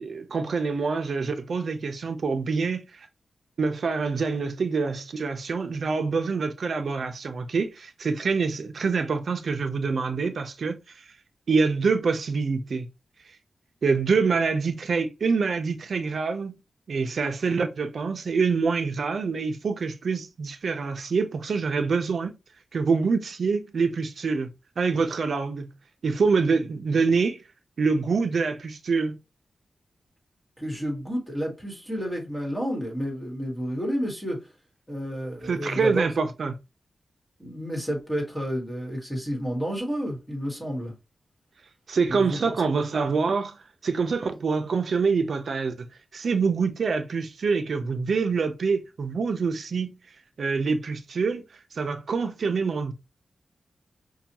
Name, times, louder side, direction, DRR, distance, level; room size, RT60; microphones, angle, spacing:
voice 1, 0.0-2.8 3.6-10.8 11.5-12.9 13.8-16.5 16.9-22.3 22.7-24.5 24.8-25.7 26.0-27.4 27.8-29.2 35.4-36.6 41.9-43.6 43.8-45.9 46.1-49.9 50.4-51.4 51.7-52.9, right 4 dB, 65° right, 0.6 m, -25 dB
voice 2, 30.6-34.4 34.9-36.1 37.4-40.9 42.1-42.5, equal, 10° left, 1.3 m, -30 dB
5.5 x 2.3 x 2.8 m
wide cardioid pair, 145°, 0 cm